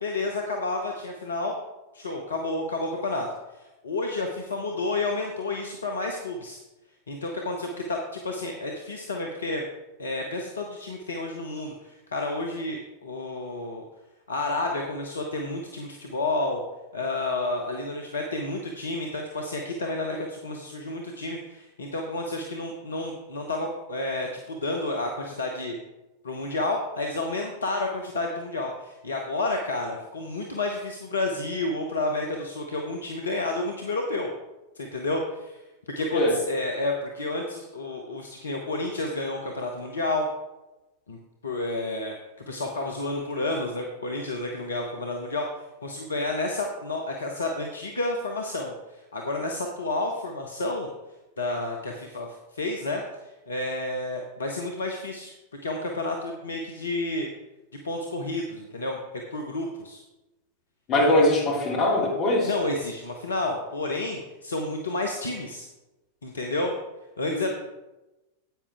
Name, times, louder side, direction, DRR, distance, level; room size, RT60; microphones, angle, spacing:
voice 1, 0.0-1.5 1.9-3.3 3.5-6.6 7.1-9.6 10.0-13.8 14.3-16.6 16.9-25.8 26.2-34.3 34.8-35.6 36.0-40.3 41.1-41.2 41.4-42.2 42.5-45.4 45.8-50.9 51.4-52.3 52.5-55.3 55.6-57.3 57.8-59.0 59.3-60.0 61.1-61.2 62.4-65.7 66.2-66.7 67.2-67.5, left 2 dB, 70° left, 1 dB, 0.9 m, -30 dB
voice 2, 60.9-62.5 67.3-67.5, left 1 dB, 40° left, -3 dB, 3.1 m, -22 dB
10.5 x 8.6 x 3.5 m, 1.0 s
figure-of-eight pair, 90°, 0 cm